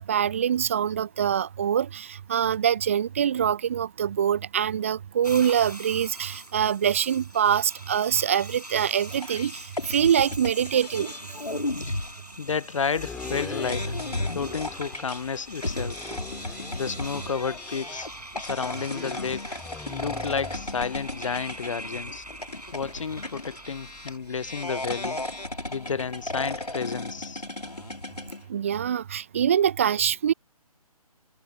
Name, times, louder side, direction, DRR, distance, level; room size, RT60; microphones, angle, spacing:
voice 1, 0.0-11.1 28.5-30.3, right 9 dB, 20° right, 0.4 m, -24 dB
sound 1, 5.2-24.2, right 1 dB, 80° right, 6.8 m, -44 dB
sound 2, 9.1-28.4, left 1 dB, 80° left, 4.0 m, -35 dB
voice 2, 12.4-14.0 14.3-16.1 16.7-18.1 18.4-19.4 19.9-22.2 22.7-25.2 25.7-27.4, left 6 dB, 55° left, 0.6 m, -31 dB
sound 3, 12.9-27.1 27.6-27.7, left 5 dB, 5° left, 3.7 m, -45 dB
figure-of-eight pair, 140°, 20 cm